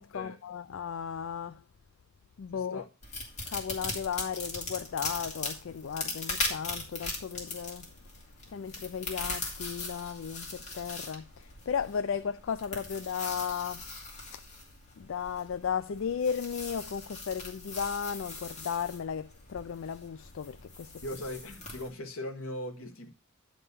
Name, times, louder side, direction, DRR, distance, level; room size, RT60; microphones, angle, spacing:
voice 1, 0.0-1.6 2.4-2.8 3.5-7.9 8.5-13.9 14.3-14.4 15.0-21.0, left 7 dB, 60° left, 0.4 m, -35 dB
voice 2, 2.5-2.9 21.0-23.1, left 1 dB, 80° left, 1.7 m, -39 dB
sound 1, 3.0-21.9, left 3 dB, 35° left, 2.6 m, -40 dB
11.0 x 3.8 x 6.8 m
head